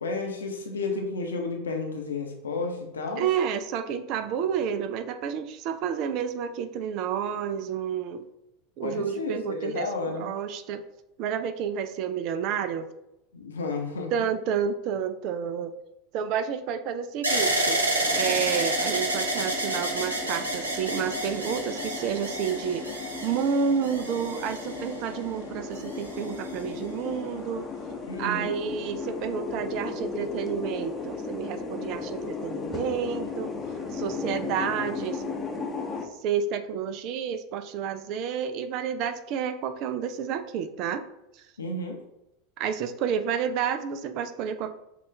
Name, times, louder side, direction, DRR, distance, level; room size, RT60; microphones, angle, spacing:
voice 1, 0.0-3.3 8.8-10.3 13.3-14.1 28.0-28.5 41.6-42.0, left 3 dB, 75° left, 2 dB, 0.8 m, -32 dB
voice 2, 3.2-8.3 8.8-10.8 11.2-12.9 14.1-15.7 16.1-17.8 18.1-27.7 28.2-33.5 33.9-35.3 36.2-41.0 42.6-44.7, right 7 dB, 50° right, 10 dB, 0.4 m, -30 dB
sound 1, 17.2-25.2 26.0-26.6, right 1 dB, 85° right, 0.9 m, -29 dB
sound 2, 18.0-36.1, left 4 dB, 20° left, 0.8 m, -36 dB
6.7 x 2.4 x 3.3 m, 0.85 s
figure-of-eight pair, 85°, 0 cm